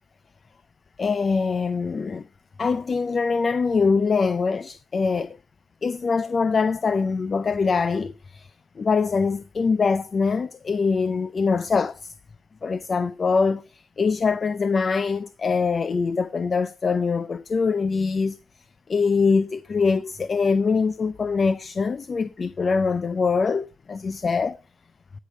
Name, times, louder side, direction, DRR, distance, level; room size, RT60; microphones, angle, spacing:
voice 1, 1.0-2.3 2.6-5.4 5.8-12.1 12.6-18.4 18.9-24.6, left 5 dB, 40° left, 0.5 m, -23 dB
18.0 x 6.6 x 3.2 m
cardioid pair, 90°, 0 cm